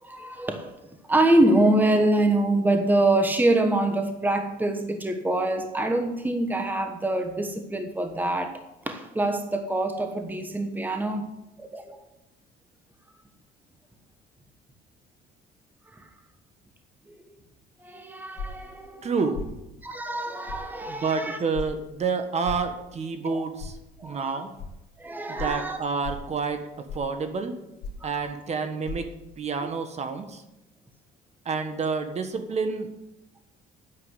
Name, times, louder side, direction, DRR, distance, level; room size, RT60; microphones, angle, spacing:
voice 1, 0.0-0.8 1.1-8.6 8.8-11.3 11.6-12.0 17.8-19.1 19.8-21.4 23.2-23.4 24.0-24.4 25.0-25.8 28.0-28.2, right 1 dB, 10° right, 1.2 m, -25 dB
sound 1, 18.4-18.7 19.3-19.6 20.5-20.6 21.5-21.7 22.4-22.7 23.6-23.7 24.6-24.7 25.4-25.6 26.0-26.3 26.9-27.1 27.8-28.1 28.8-29.0, left 4 dB, 85° left, 2.0 m, -35 dB
voice 2, 19.0-19.4 20.9-23.8 24.0-24.5 25.3-27.5 28.0-29.1 29.4-30.4 31.4-32.9, right 4 dB, 40° right, 1.4 m, -29 dB
9.5 x 7.7 x 8.1 m
cardioid pair, 110°, 17 cm